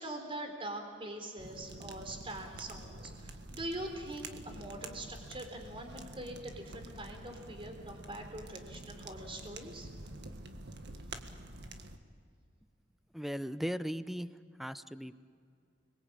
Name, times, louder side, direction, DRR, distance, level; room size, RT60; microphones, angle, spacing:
voice 1, 0.0-9.9, right 1 dB, 30° right, 4 dB, 3.9 m, -43 dB
sound 1, 1.4-12.0, right 2 dB, 60° right, 1.7 m, -48 dB
voice 2, 13.1-14.3 14.6-15.1, equal, ahead, 13 dB, 0.7 m, -37 dB
30.0 x 22.0 x 8.8 m, 2.3 s
head